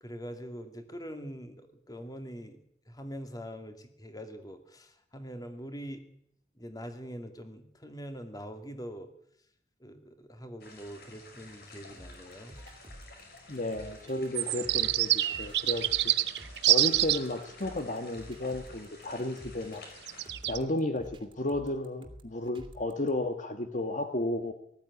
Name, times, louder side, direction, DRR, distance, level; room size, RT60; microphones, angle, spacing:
voice 1, 0.0-2.6 2.9-6.0 6.6-9.1 9.8-12.6, equal, 20° left, 7 dB, 2.4 m, -43 dB
sound 1, 10.6-20.3, left 2 dB, 60° left, 5.9 m, -52 dB
sound 2, 12.0-23.1, right 1 dB, 30° right, 2.6 m, -50 dB
voice 2, 13.5-16.1 16.7-19.8 20.5-24.5, left 2 dB, 45° left, 7 dB, 1.4 m, -33 dB
sound 3, 14.3-17.2 20.1-20.6, right 14 dB, 70° right, 0.9 m, -26 dB
19.0 x 14.5 x 9.7 m, 0.71 s
head